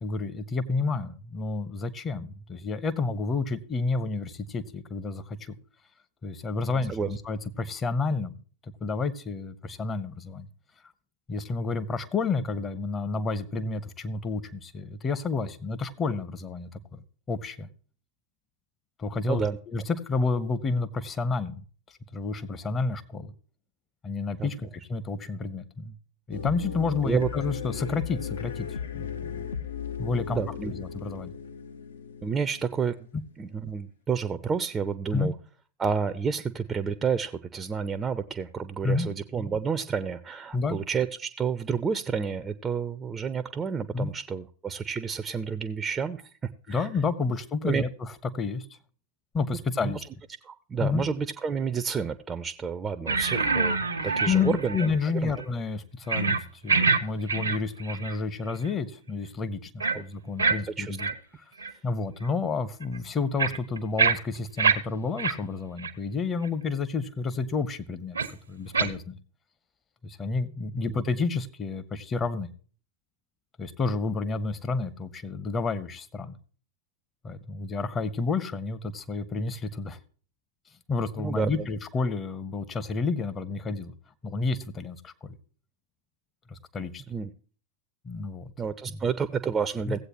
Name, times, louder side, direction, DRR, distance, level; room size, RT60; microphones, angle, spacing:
voice 1, 0.0-5.6 6.2-8.4 8.8-10.5 11.3-17.0 17.3-17.7 19.0-21.6 22.1-23.3 24.0-25.9 26.3-28.7 28.9-29.5 30.0-31.3 35.1-35.3 38.8-39.1 40.5-40.8 43.9-44.1 46.7-48.7 49.3-50.0 50.8-51.1 54.0-61.1 61.8-68.2 68.5-69.2 70.0-72.5 73.6-76.4 77.2-80.0 80.9-83.9 84.2-85.4 86.5-87.0 88.0-88.5 88.9-89.0 89.9-90.0, left 4 dB, 20° left, 12 dB, 0.8 m, -30 dB
voice 2, 19.3-19.6 24.4-24.5 27.0-27.3 30.4-30.7 32.2-33.0 33.4-35.3 35.8-46.2 46.7-46.9 47.6-47.8 49.8-50.0 50.4-54.8 55.2-55.3 59.9-60.0 60.8-61.0 70.9-71.0 81.2-81.7 87.1-87.3 88.6-90.0, right 6 dB, 20° right, 12 dB, 0.5 m, -30 dB
sound 1, 26.3-33.2, left 7 dB, 65° left, 0.6 m, -36 dB
sound 2, 53.1-55.0 55.3-55.4 56.1-56.4 56.7-57.0 57.3-58.2 58.5-58.7 59.8-60.0 60.4-60.6 61.0-61.1 61.6-61.7 62.2-62.3 62.8-64.8 65.2-65.3 65.8-65.9 66.4-66.5 68.2-68.3 68.7-68.9, right 5 dB, 75° right, 0.7 m, -25 dB
16.5 x 8.0 x 3.0 m, 0.42 s
figure-of-eight pair, 90°, 0 cm